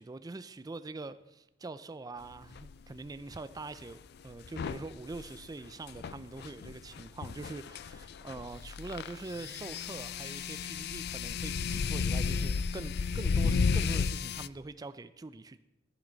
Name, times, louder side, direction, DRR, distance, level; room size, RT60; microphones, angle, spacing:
voice 1, 0.0-15.6, right 3 dB, 20° right, 0.4 m, -44 dB
sound 1, 2.5-2.7 4.4-14.5, left 5 dB, 55° left, 0.4 m, -33 dB
14.5 x 10.5 x 4.0 m
head